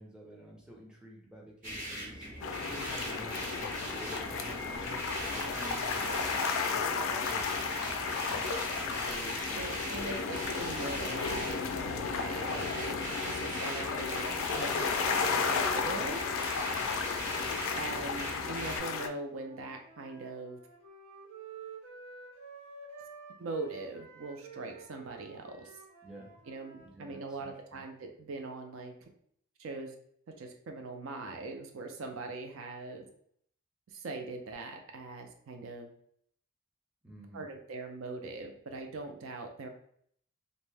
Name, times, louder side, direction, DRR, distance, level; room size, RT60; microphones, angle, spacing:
voice 1, 0.0-2.3 2.6-8.5 8.9-10.3 12.3-12.7 13.4-13.7 26.0-26.3 26.8-27.8 37.0-37.4, right 1 dB, 5° right, -3 dB, 0.5 m, -50 dB
sound 1, 1.6-18.8, equal, 35° right, 1.0 m, -40 dB
sound 2, 2.4-19.1, left 5 dB, 60° left, 0.3 m, -34 dB
voice 2, 6.0-6.3 9.5-16.2 17.7-20.6 23.4-25.7 26.5-29.1 29.6-29.9 30.4-33.0 33.9-35.9 37.3-39.7, right 3 dB, 60° right, 4 dB, 0.4 m, -41 dB
Wind instrument woodwind instrument, 19.3-27.4, right 4 dB, 80° right, 0.9 m, -51 dB
2.6 x 2.1 x 3.2 m, 0.65 s
head